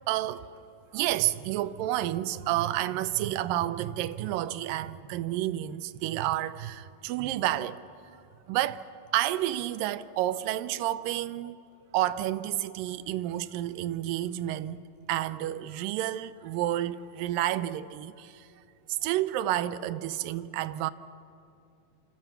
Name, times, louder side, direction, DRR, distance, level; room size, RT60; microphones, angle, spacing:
voice 1, 0.1-0.5 0.9-7.8 8.5-8.8 9.1-11.6 11.9-18.5 18.9-20.9, right 13 dB, 90° right, 2.4 m, -30 dB
26.5 x 25.5 x 6.9 m
omnidirectional pair, 3.9 m